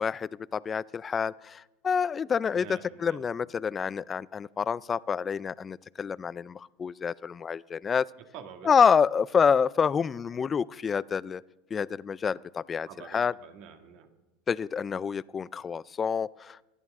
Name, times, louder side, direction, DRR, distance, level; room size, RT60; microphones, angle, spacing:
voice 1, 0.0-8.1 8.6-11.4 11.7-13.3 14.5-16.6, left 6 dB, 25° left, 21 dB, 0.4 m, -27 dB
voice 2, 2.5-3.2 8.3-8.7 12.9-14.1, right 7 dB, 60° right, 6 dB, 2.0 m, -46 dB
25.5 x 10.5 x 3.7 m, 1.1 s
supercardioid pair, 120°, 0 cm